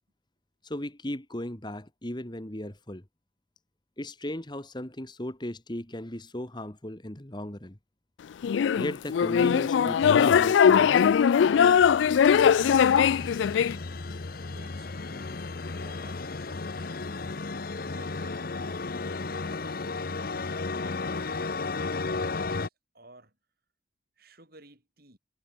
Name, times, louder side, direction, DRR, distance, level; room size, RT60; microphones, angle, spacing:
voice 1, 0.6-3.0 4.0-7.8 8.4-11.1 14.1-14.2, left 1 dB, 25° left, 1.8 m, -36 dB
sound 1, 8.4-13.7, left 7 dB, 70° left, 0.3 m, -20 dB
sound 2, 11.1-22.7, left 3 dB, 50° left, 0.8 m, -34 dB
voice 2, 14.5-17.0 17.8-18.6 19.3-23.4 24.2-25.2, right 2 dB, 50° right, 7.0 m, -56 dB
head